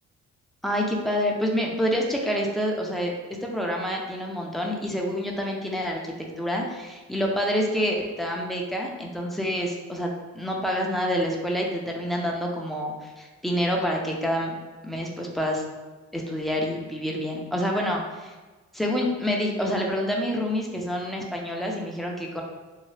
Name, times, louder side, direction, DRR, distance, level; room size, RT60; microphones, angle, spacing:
voice 1, 0.6-3.1 3.4-10.1 10.3-14.6 14.8-15.6 16.1-18.3 18.7-22.4, equal, ahead, -1 dB, 0.5 m, -27 dB
2.8 x 2.2 x 3.2 m, 1.3 s
cardioid pair, 90°, 30 cm